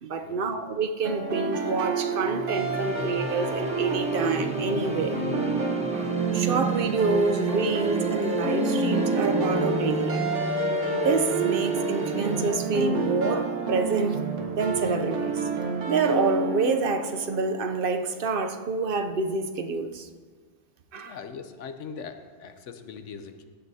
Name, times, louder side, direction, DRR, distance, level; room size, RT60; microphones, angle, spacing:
voice 1, 0.0-5.2 5.9-6.1 6.3-10.3 11.0-14.2 14.5-15.4 15.9-20.1 20.9-21.2, right 4 dB, 55° right, 0.8 m, -27 dB
sound 1, 1.0-17.9, right 3 dB, 80° right, 1.4 m, -29 dB
sound 2, 2.2-12.5, right 2 dB, 5° right, 1.0 m, -32 dB
voice 2, 20.9-23.4, left 6 dB, 80° left, 1.1 m, -41 dB
15.0 x 9.7 x 2.7 m
omnidirectional pair, 1.2 m